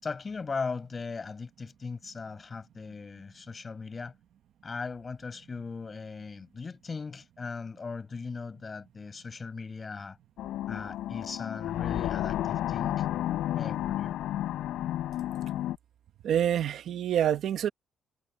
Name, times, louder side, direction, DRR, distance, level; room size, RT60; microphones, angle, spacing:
voice 1, 0.0-4.1 4.6-10.2 10.7-13.1 13.6-14.2, left 4 dB, 20° left, 6.4 m, -38 dB
sound 1, 10.4-15.8, left 13 dB, 70° left, 3.9 m, -32 dB
voice 2, 16.2-17.7, right 10 dB, 55° right, 1.0 m, -26 dB
cardioid pair, 175°, 0 cm